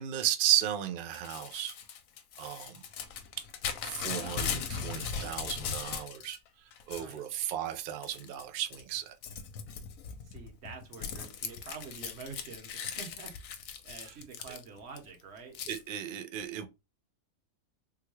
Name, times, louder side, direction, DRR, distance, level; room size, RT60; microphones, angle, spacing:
voice 1, 0.0-1.7 2.4-2.8 3.8-6.4 6.9-9.1 15.7-16.7, right 12 dB, 90° right, 0.4 m, -34 dB
Crumpling crinkling / Tearing, 1.1-6.4 6.7-7.5 8.0-8.4 8.7-15.0 15.6-15.8, left 7 dB, 75° left, 1.0 m, -39 dB
voice 2, 6.9-7.3 10.2-13.3 13.8-15.6, right 5 dB, 55° right, 1.1 m, -47 dB
3.7 x 2.2 x 3.0 m
omnidirectional pair, 1.5 m